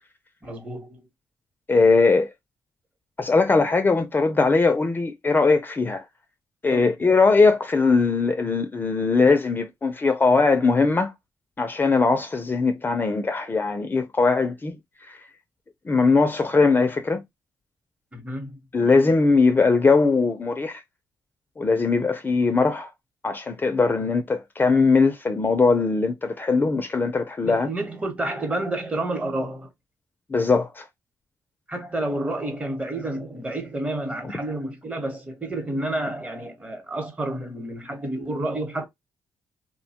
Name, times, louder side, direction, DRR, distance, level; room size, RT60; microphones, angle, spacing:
voice 1, 0.4-1.1 6.7-6.9 18.1-18.6 27.4-29.7 31.7-38.9, right 1 dB, 20° right, 1.0 m, -30 dB
voice 2, 1.7-2.3 3.2-6.0 6.6-11.1 11.6-14.8 15.9-17.2 18.7-20.8 21.6-22.9 23.2-27.7 30.3-30.8, left 4 dB, 30° left, 0.5 m, -20 dB
2.7 x 2.2 x 2.7 m
cardioid pair, 75°, 7 cm